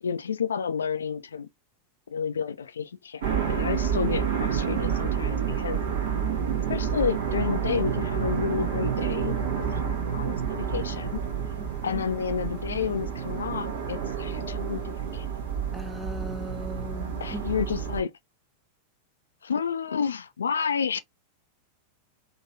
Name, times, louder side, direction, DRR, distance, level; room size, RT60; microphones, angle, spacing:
voice 1, 0.0-1.5 2.1-5.8 6.7-9.3 9.7-9.8 10.1-11.2 11.8-15.3 17.2-18.1 19.4-21.0, left 6 dB, 70° left, 0.4 m, -30 dB
sound 1, 3.2-18.0, right 7 dB, 60° right, 1.1 m, -29 dB
voice 2, 15.7-17.4, left 1 dB, 5° right, 0.4 m, -38 dB
3.8 x 2.7 x 2.6 m
figure-of-eight pair, 90°, 0 cm